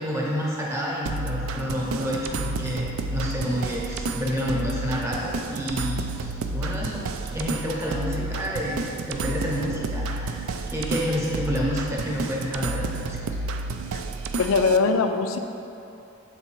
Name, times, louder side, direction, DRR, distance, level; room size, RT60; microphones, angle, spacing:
voice 1, 0.0-10.4 10.7-13.3, equal, 15° right, -4 dB, 0.8 m, -29 dB
sound 1, 1.1-14.8, right 3 dB, 85° right, 0.4 m, -31 dB
voice 2, 14.4-15.4, left 4 dB, 85° left, 7 dB, 0.4 m, -21 dB
6.8 x 4.1 x 4.5 m, 2.8 s
head